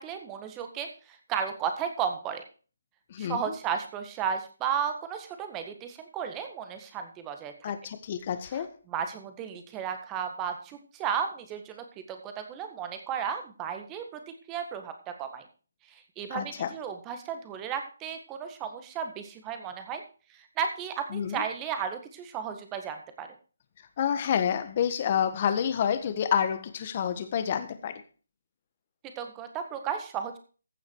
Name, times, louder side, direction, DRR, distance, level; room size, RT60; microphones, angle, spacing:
voice 1, 0.0-2.4 3.2-7.7 8.5-14.2 14.5-15.4 15.9-20.0 20.3-23.3 29.2-30.4, right 7 dB, 15° right, 7 dB, 1.6 m, -34 dB
voice 2, 3.1-3.5 7.6-8.7 16.3-16.7 21.1-21.4 24.0-28.0, left 8 dB, 35° left, 11 dB, 1.4 m, -28 dB
15.0 x 7.1 x 4.7 m, 0.38 s
hypercardioid pair, 160°, 0 cm